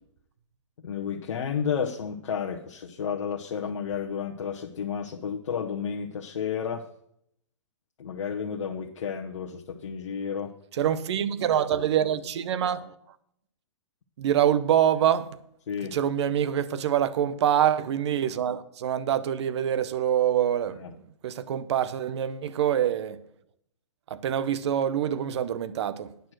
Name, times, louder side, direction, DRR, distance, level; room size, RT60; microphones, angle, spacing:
voice 1, 0.8-6.8 8.0-10.5 15.7-16.0 20.7-20.9, left 7 dB, 70° left, 0.9 m, -32 dB
voice 2, 10.8-12.9 14.2-15.3 15.9-20.8 21.2-23.2 24.1-26.1, right 10 dB, 60° right, 0.7 m, -25 dB
9.3 x 6.2 x 6.2 m
hypercardioid pair, 130°, 16 cm